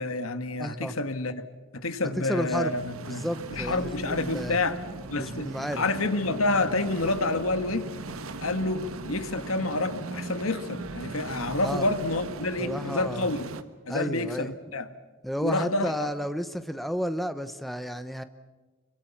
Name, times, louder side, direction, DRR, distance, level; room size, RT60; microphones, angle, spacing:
voice 1, 0.0-1.4 1.7-3.2 3.5-4.8 5.1-7.9 8.4-13.4 13.9-14.9 15.4-16.1, left 2 dB, 85° left, 10 dB, 1.7 m, -28 dB
voice 2, 0.6-0.9 2.2-2.7 3.1-4.6 5.2-5.8 11.6-11.9 12.6-13.3 13.9-14.5 15.2-18.2, equal, ahead, 10 dB, 0.8 m, -32 dB
sound 1, 2.5-13.6, right 3 dB, 85° right, 1.4 m, -39 dB
sound 2, 3.5-12.7, right 2 dB, 25° right, 1.5 m, -44 dB
26.0 x 24.0 x 7.2 m, 1.3 s
head